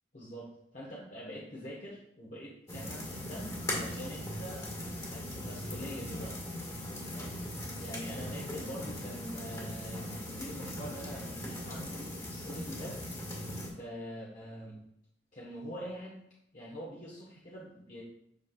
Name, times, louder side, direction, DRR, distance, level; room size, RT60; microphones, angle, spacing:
voice 1, 0.1-6.4 7.1-7.3 7.8-13.0 13.6-14.8 15.3-16.2 16.5-18.0, equal, 45° left, -5 dB, 1.3 m, -44 dB
sound 1, 2.7-13.7, left 1 dB, 20° left, 1.8 m, -39 dB
8.4 x 5.8 x 2.4 m, 0.75 s
head